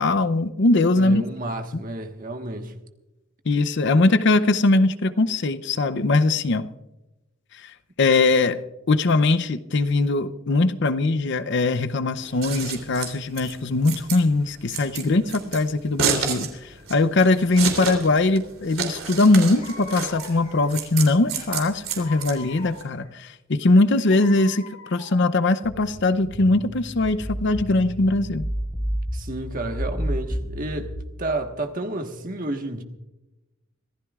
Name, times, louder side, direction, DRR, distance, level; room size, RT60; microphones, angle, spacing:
voice 1, 0.0-1.3 3.5-6.7 7.5-8.6 8.9-28.5, left 2 dB, 55° left, 0.6 m, -21 dB
voice 2, 1.0-2.7 29.1-32.8, right 2 dB, 40° right, 1.4 m, -31 dB
Scissors, 12.2-22.8, right 6 dB, 75° right, 3.4 m, -30 dB
sound 1, 18.9-19.1 19.4-20.8 21.3-23.1 23.6-25.4, left 4 dB, 40° left, 4.6 m, -43 dB
sound 2, 25.6-31.0, equal, 10° left, 3.8 m, -31 dB
25.5 x 15.5 x 2.4 m
head